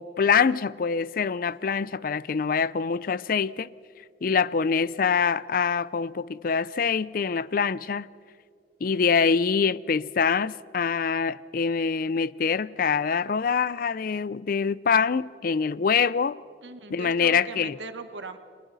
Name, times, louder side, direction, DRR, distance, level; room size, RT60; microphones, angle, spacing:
voice 1, 0.0-3.7 4.2-8.1 8.8-16.4 16.9-17.7, left 6 dB, 50° left, 0.4 m, -25 dB
voice 2, 16.6-18.4, right 3 dB, 80° right, 1.3 m, -39 dB
29.5 x 23.5 x 4.1 m
head